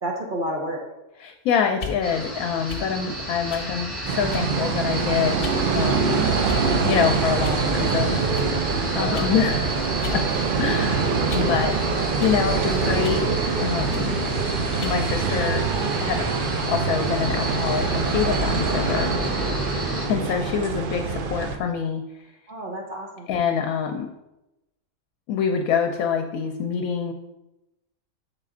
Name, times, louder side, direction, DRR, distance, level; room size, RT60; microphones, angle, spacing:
voice 1, 0.0-0.8 8.9-9.5 13.9-14.2 19.0-19.1 22.5-23.3, right 1 dB, 40° right, -1 dB, 0.9 m, -31 dB
voice 2, 1.2-6.3 6.8-10.3 10.6-11.0 11.3-13.3 13.6-14.1 14.8-15.7 16.0-16.3 16.7-19.2 20.1-22.0 23.3-24.1 25.3-27.1, left 7 dB, 80° left, 5 dB, 1.0 m, -26 dB
sound 1, 1.7-2.0 2.7-2.9 3.5-3.7 4.3-4.6 5.4-5.6 6.4-6.8 7.4-7.6 8.3-8.5 9.1-9.3 10.0-10.2 10.6-11.6 12.2-12.4 13.0-13.3 13.9-14.1 14.8-15.0, left 4 dB, 45° left, 1.0 m, -36 dB
sound 2, 2.0-20.1, equal, ahead, 2.1 m, -32 dB
sound 3, 4.0-21.6, right 5 dB, 70° right, 0.5 m, -24 dB
6.9 x 4.2 x 3.7 m, 0.95 s
omnidirectional pair, 1.5 m